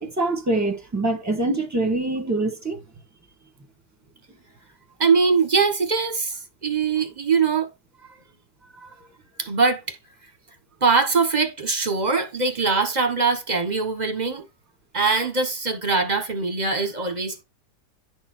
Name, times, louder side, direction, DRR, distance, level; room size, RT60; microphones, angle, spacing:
voice 1, 0.0-2.8, right 2 dB, 10° right, 1.4 m, -24 dB
voice 2, 5.0-7.7 8.7-8.9 9.4-10.0 10.8-14.4 14.9-17.4, right 4 dB, 30° right, 1.2 m, -22 dB
11.0 x 4.3 x 4.4 m
omnidirectional pair, 1.8 m